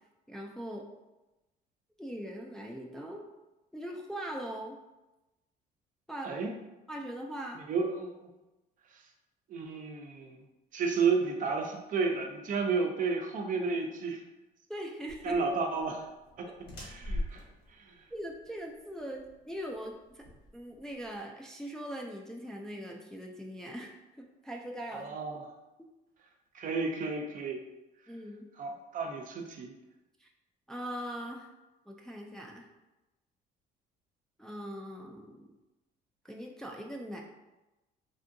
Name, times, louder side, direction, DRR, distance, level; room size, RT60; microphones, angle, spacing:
voice 1, 0.3-0.9 2.0-3.3 3.7-4.8 6.1-6.3 6.9-7.6 14.7-15.4 16.5-16.6 18.1-20.2 20.5-25.1 28.1-28.5 30.2-30.3 30.7-31.5 31.9-32.7 34.4-35.5 36.2-37.2, equal, 5° left, -1 dB, 0.3 m, -41 dB
voice 2, 7.7-8.3 8.9-9.0 9.5-10.4 10.7-14.2 15.2-16.0 16.4-16.5 16.8-17.4 17.7-18.0 24.9-25.4 26.5-27.6 28.6-29.7, right 4 dB, 50° right, 3 dB, 0.5 m, -32 dB
sound 1, 15.1-21.2, left 1 dB, 80° left, 1.2 m, -43 dB
3.6 x 2.6 x 2.6 m, 1.0 s
cardioid pair, 110°, 17 cm